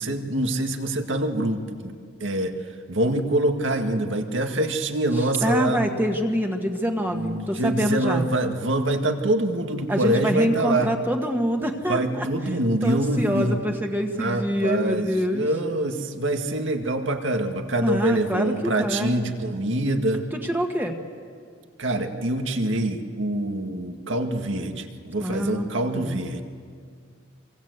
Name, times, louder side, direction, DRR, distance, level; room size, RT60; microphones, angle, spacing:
voice 1, 0.0-1.9 2.2-2.5 2.9-5.9 7.1-10.9 11.9-13.6 14.2-20.2 21.8-26.4, right 1 dB, 75° right, 5 dB, 1.9 m, -25 dB
voice 2, 5.1-8.3 9.9-12.3 12.8-15.5 17.8-19.2 20.3-21.0 25.2-25.7 25.9-26.2, equal, 10° right, 2 dB, 1.5 m, -25 dB
26.0 x 25.0 x 8.1 m, 2.1 s
head